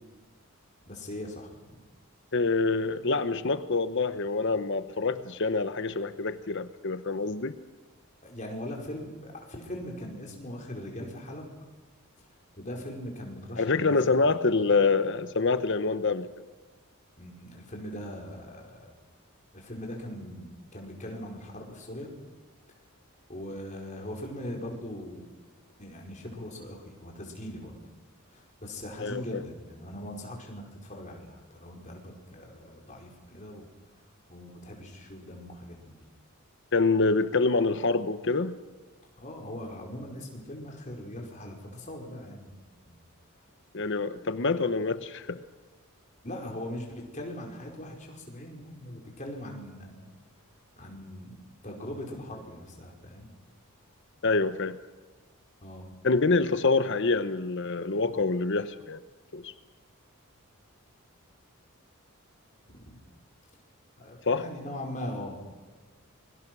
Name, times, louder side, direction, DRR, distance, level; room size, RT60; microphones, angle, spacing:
voice 1, 0.8-1.5 8.2-11.5 12.6-14.1 17.2-18.9 19.5-22.1 23.3-25.3 25.8-27.7 28.3-33.7 34.3-36.0 39.2-42.5 42.9-43.0 46.2-50.2 50.7-53.3 55.6-55.9 62.7-63.0 64.0-65.4, left 1 dB, 35° left, 0 dB, 5.0 m, -40 dB
voice 2, 2.3-7.5 13.6-16.3 29.0-29.4 36.7-38.5 43.7-45.4 54.2-54.8 56.0-59.0 59.3-59.5 64.3-64.5, left 3 dB, 55° left, 11 dB, 0.9 m, -26 dB
26.5 x 23.0 x 6.2 m, 1.2 s
head